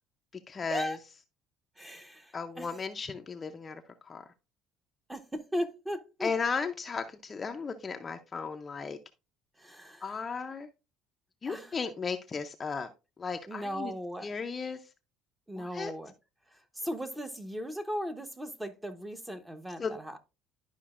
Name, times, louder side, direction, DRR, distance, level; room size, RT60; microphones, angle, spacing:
voice 1, 0.5-1.0 2.3-4.2 6.2-9.0 10.0-10.7 11.4-12.9 13.2-13.9 14.2-14.8 15.5-15.9 19.8-20.0, left 5 dB, 25° left, 0.6 m, -35 dB
voice 2, 1.8-2.7 5.1-6.3 9.6-10.2 11.5-11.8 13.5-14.3 15.5-16.1 16.7-20.2, equal, 10° right, 0.9 m, -37 dB
11.5 x 5.1 x 2.5 m
cardioid pair, 135°, 0 cm